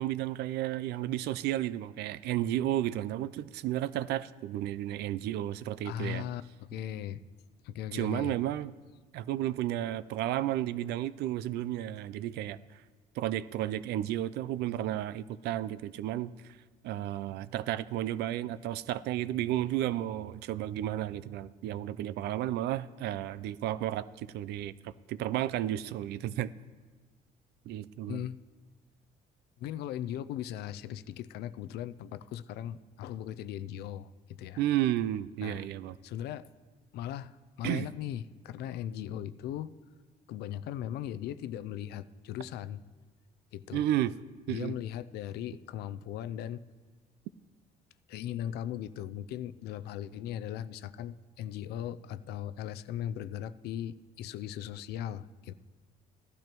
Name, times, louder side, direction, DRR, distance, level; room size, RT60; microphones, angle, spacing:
voice 1, 0.0-6.2 7.9-8.7 9.1-12.6 13.2-16.3 16.8-26.5 27.7-28.2 34.6-36.0 37.6-37.8 43.7-44.1 44.5-44.7, right 13 dB, 75° right, 17 dB, 0.4 m, -32 dB
voice 2, 5.8-7.2 7.6-8.3 28.1-28.4 29.6-34.6 35.4-35.7 36.0-36.4 36.9-39.7 40.3-42.8 43.5-43.8 44.5-46.6 48.1-55.5, left 11 dB, 75° left, 14 dB, 0.4 m, -38 dB
16.0 x 12.0 x 3.0 m, 1.4 s
cardioid pair, 110°, 17 cm